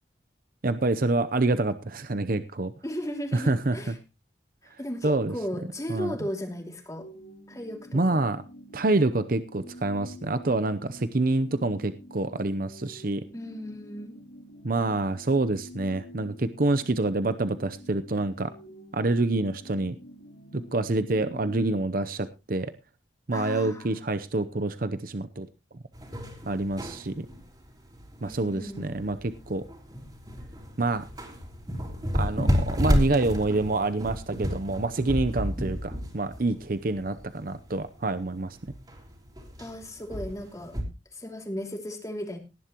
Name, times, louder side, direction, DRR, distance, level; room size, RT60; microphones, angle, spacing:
voice 1, 0.6-2.7 3.3-3.9 5.0-5.3 5.9-6.2 7.9-8.4 8.7-13.2 14.6-18.5 18.9-20.0 20.5-22.7 23.3-25.5 26.5-27.3 28.2-29.6 30.8-31.0 32.1-38.7, right 2 dB, 50° right, 11 dB, 0.7 m, -27 dB
voice 2, 2.8-4.0 4.6-7.1 7.5-8.2 13.3-14.2 23.3-23.9 28.2-29.1 39.6-40.8 41.1-42.4, equal, 20° left, 4 dB, 2.6 m, -36 dB
sound 1, 7.0-21.8, equal, 70° left, 2.9 m, -47 dB
sound 2, 25.9-40.8, equal, 25° right, 3.5 m, -31 dB
18.0 x 11.0 x 3.0 m, 0.27 s
head